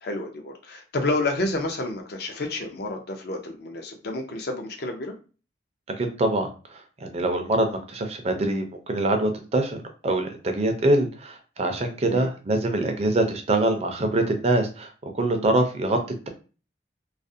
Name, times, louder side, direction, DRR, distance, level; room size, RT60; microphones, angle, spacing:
voice 1, 0.0-5.1 12.1-12.3, left 2 dB, 60° left, 3 dB, 0.5 m, -29 dB
voice 2, 6.0-6.5 7.0-16.0, right 1 dB, 35° right, 5 dB, 0.4 m, -24 dB
2.4 x 2.0 x 2.6 m, 0.35 s
head